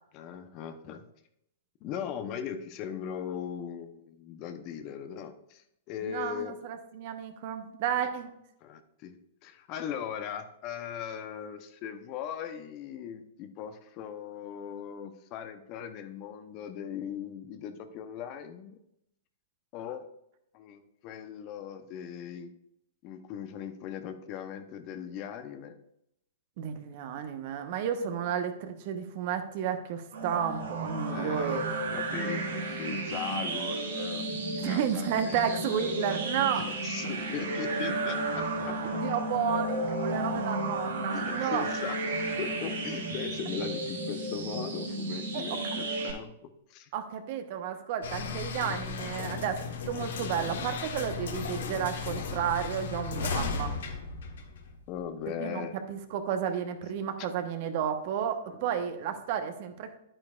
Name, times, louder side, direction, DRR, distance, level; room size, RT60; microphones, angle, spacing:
voice 1, 0.1-1.0 1.8-6.6 8.6-18.8 19.7-20.1 20.5-22.5 23.0-25.7 31.0-31.7 31.9-34.3 34.6-36.2 36.6-39.0 41.1-42.0 42.4-46.9 54.9-55.8 58.5-58.7, left 8 dB, 40° left, 9 dB, 0.8 m, -39 dB
voice 2, 6.0-8.3 26.6-31.6 34.6-36.6 39.0-41.6 45.3-45.4 46.9-53.8 55.4-59.9, right 8 dB, 55° right, 7 dB, 1.1 m, -32 dB
sound 1, 30.1-46.1, right 2 dB, 80° right, 2.4 m, -33 dB
sound 2, 48.0-55.0, left 5 dB, 70° left, 1.2 m, -35 dB
10.5 x 8.8 x 2.5 m, 0.79 s
hypercardioid pair, 110°, 0 cm